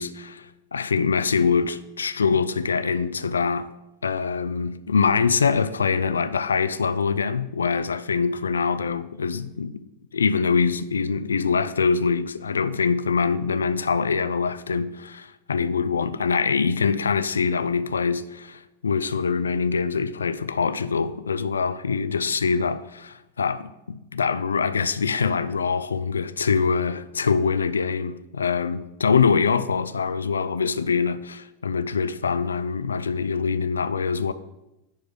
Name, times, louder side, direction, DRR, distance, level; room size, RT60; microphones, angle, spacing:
voice 1, 0.0-3.7 4.0-9.8 10.1-34.3, left 5 dB, 70° left, 0.4 m, -24 dB
10.5 x 4.6 x 5.0 m
figure-of-eight pair, 90°, 0 cm